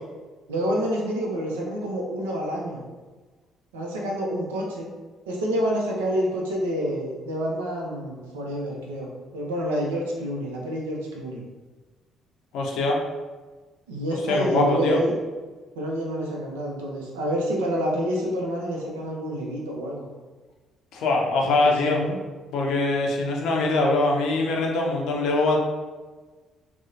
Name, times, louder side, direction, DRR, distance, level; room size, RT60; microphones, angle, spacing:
voice 1, 0.5-2.8 3.7-4.9 5.3-11.4 13.9-15.1 15.8-20.1 21.4-22.2, equal, 90° right, -2 dB, 0.4 m, -28 dB
voice 2, 12.5-13.0 14.3-15.0 20.9-22.0 22.5-25.6, left 2 dB, 70° left, 0 dB, 0.5 m, -22 dB
2.8 x 2.0 x 2.4 m, 1.3 s
hypercardioid pair, 55°, 0 cm